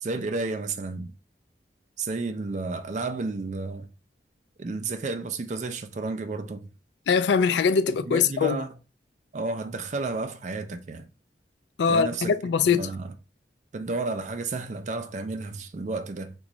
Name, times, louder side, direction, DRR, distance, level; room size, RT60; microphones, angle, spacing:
voice 1, 0.0-1.1 2.0-3.9 4.6-6.6 8.1-8.7 9.3-11.1 11.9-12.3 12.7-13.1 13.7-16.3, right 3 dB, 40° right, 0.4 m, -31 dB
voice 2, 7.1-8.6 11.8-12.9, left 6 dB, 80° left, 0.3 m, -22 dB
3.0 x 2.3 x 3.7 m
head